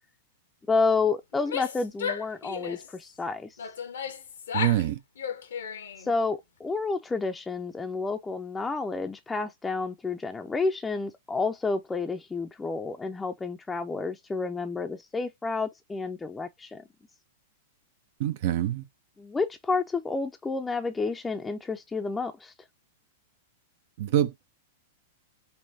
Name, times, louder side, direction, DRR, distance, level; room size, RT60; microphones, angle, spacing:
voice 1, 0.7-3.6 6.0-16.8 19.2-22.5, left 4 dB, 10° left, 0.5 m, -30 dB
Female speech woman speaking / Yell, 1.3-3.0 3.6-4.9 5.2-6.1, left 7 dB, 70° left, 0.8 m, -34 dB
voice 2, 4.5-5.0 18.2-18.8 24.0-24.5, right 12 dB, 55° right, 0.4 m, -25 dB
5.5 x 2.2 x 2.6 m
figure-of-eight pair, 100°, 0 cm